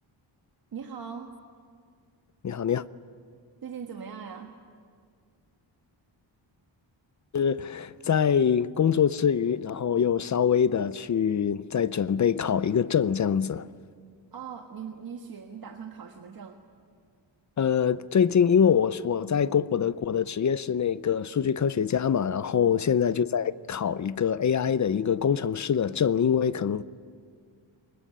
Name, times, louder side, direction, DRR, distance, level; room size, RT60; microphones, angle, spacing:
voice 1, 0.7-1.3 3.6-4.6 14.3-16.6 22.6-22.8, right 7 dB, 50° right, 1.5 m, -40 dB
voice 2, 2.4-2.8 7.3-13.7 17.6-26.8, left 7 dB, 40° left, 0.5 m, -24 dB
23.0 x 20.5 x 10.0 m
wide cardioid pair, 155°, 46 cm